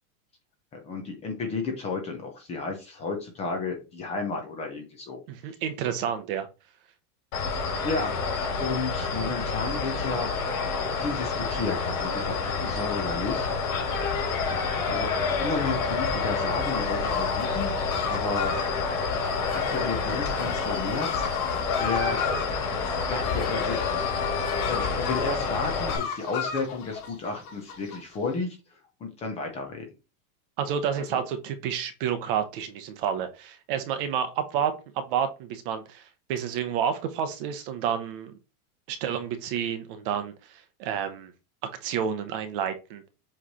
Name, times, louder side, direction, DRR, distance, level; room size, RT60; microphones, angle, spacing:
voice 1, 0.7-5.2 7.8-8.2 8.6-10.3 11.0-13.5 14.9-17.7 18.1-18.7 19.4-21.3 21.8-22.2 23.1-24.0 24.6-29.9 30.9-31.2, left 3 dB, 15° left, 3 dB, 0.6 m, -32 dB
voice 2, 5.3-6.5 30.6-38.3 38.9-41.3 41.8-43.0, right 8 dB, 35° right, 9 dB, 0.8 m, -30 dB
sound 1, 7.3-26.0, left 4 dB, 60° left, 4.0 m, -28 dB
sound 2, 16.6-28.0, left 7 dB, 75° left, 2.0 m, -35 dB
7.6 x 3.3 x 4.1 m, 0.30 s
supercardioid pair, 175°, 45 cm